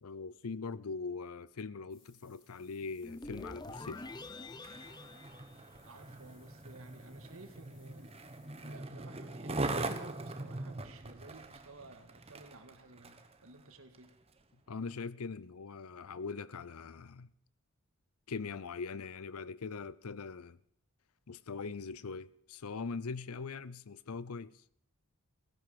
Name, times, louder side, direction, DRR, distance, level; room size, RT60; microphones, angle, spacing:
voice 1, 0.0-4.1 14.7-17.3 18.3-20.6 21.3-24.6, left 4 dB, 85° left, 0.6 m, -41 dB
sound 1, 1.9-8.8, left 4 dB, 55° left, 5.3 m, -69 dB
sound 2, 3.0-6.3, left 2 dB, 20° left, 0.7 m, -46 dB
Skateboard, 4.5-13.3 13.9-14.1, right 2 dB, 25° right, 1.0 m, -41 dB
voice 2, 5.8-8.1 8.6-14.1, right 2 dB, 70° right, 1.9 m, -54 dB
16.5 x 11.0 x 6.6 m
head